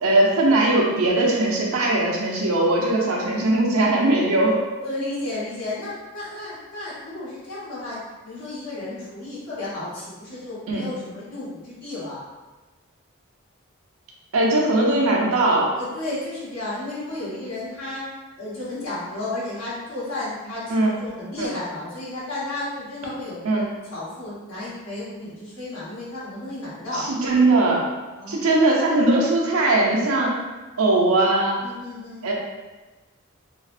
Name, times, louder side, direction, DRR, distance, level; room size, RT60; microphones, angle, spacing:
voice 1, 0.0-4.6 10.7-10.9 14.3-15.7 20.7-20.9 21.4-21.5 23.4-23.6 26.9-27.9 28.3-30.3 30.8-31.6 32.2-32.3, right 2 dB, 85° right, -2 dB, 0.5 m, -20 dB
voice 2, 4.8-8.0 8.2-12.2 15.8-18.0 18.4-27.1 28.2-29.1 31.6-32.3, left 2 dB, 85° left, -10 dB, 1.1 m, -33 dB
2.5 x 2.0 x 2.5 m, 1.2 s
head